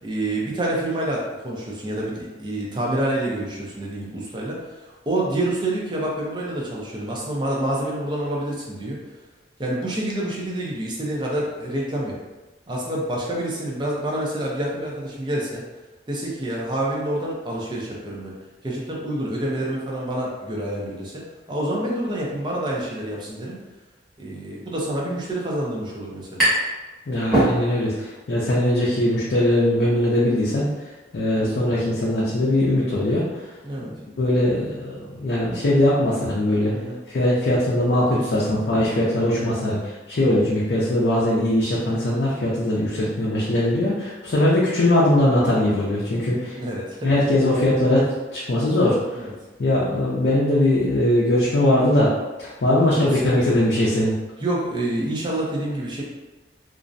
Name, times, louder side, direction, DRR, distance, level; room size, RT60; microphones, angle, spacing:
voice 1, 0.0-9.0 9.6-12.2 12.7-15.6 16.1-18.3 18.6-21.2 21.5-23.6 24.2-26.5 31.4-31.7 33.6-33.9 36.7-37.0 39.1-39.4 43.6-43.9 46.6-47.1 49.1-49.3 52.8-53.6 54.4-56.0, right 1 dB, 25° right, -3 dB, 0.5 m, -28 dB
sound 1, 26.4-26.8 27.1-28.0, right 1 dB, ahead, 1.0 m, -22 dB
voice 2, 27.1-30.7 31.1-33.2 34.2-36.7 37.1-46.6 47.0-49.2 49.6-54.2, left 1 dB, 60° left, -6 dB, 0.4 m, -21 dB
2.5 x 2.0 x 2.5 m, 1.2 s
head